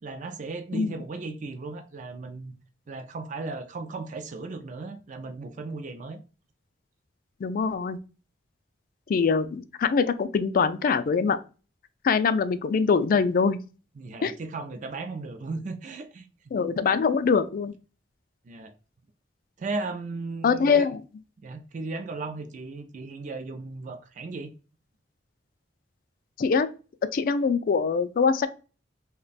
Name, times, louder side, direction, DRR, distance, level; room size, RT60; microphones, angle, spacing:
voice 1, 0.0-2.5 2.9-6.2 14.0-16.3 18.4-18.7 19.6-20.9 21.4-24.5, right 3 dB, 45° right, 0.4 m, -36 dB
voice 2, 7.4-8.0 9.1-11.4 12.0-13.6 14.2-14.3 16.5-17.7 20.4-21.0 26.4-26.7 27.1-28.5, left 5 dB, 50° left, 0.3 m, -23 dB
3.2 x 2.2 x 3.9 m
head